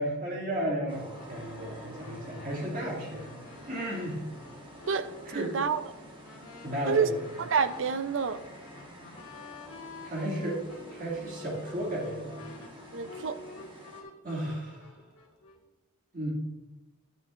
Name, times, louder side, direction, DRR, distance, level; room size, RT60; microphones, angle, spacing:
voice 1, 0.0-3.4 3.7-4.2 5.2-5.6 6.6-7.2 10.0-10.6 10.9-12.4 14.2-14.9 16.1-16.3, right 1 dB, 40° right, -4 dB, 2.2 m, -33 dB
sound 1, 0.9-14.0, equal, 20° right, 1.3 m, -49 dB
sound 2, 1.1-15.6, left 3 dB, 80° left, 1.8 m, -49 dB
voice 2, 5.3-5.8 6.9-7.1 7.4-8.4 12.9-13.4, right 6 dB, 55° right, 12 dB, 0.5 m, -28 dB
11.0 x 9.8 x 2.5 m, 1.0 s
head